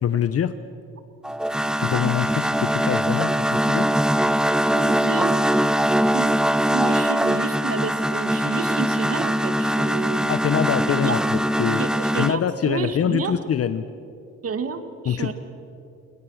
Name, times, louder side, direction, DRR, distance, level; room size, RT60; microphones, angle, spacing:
voice 1, 0.0-0.6 1.8-3.9 10.3-11.8 12.2-13.9 15.0-15.3, left 9 dB, 50° left, 12 dB, 0.9 m, -24 dB
sound 1, 1.2-12.3, equal, ahead, 0.7 m, -22 dB
voice 2, 4.7-5.8 6.1-10.3 10.9-11.2 11.8-13.4 14.4-15.3, right 6 dB, 50° right, 9 dB, 2.0 m, -30 dB
28.5 x 21.5 x 6.5 m, 2.6 s
cardioid pair, 90°, 30 cm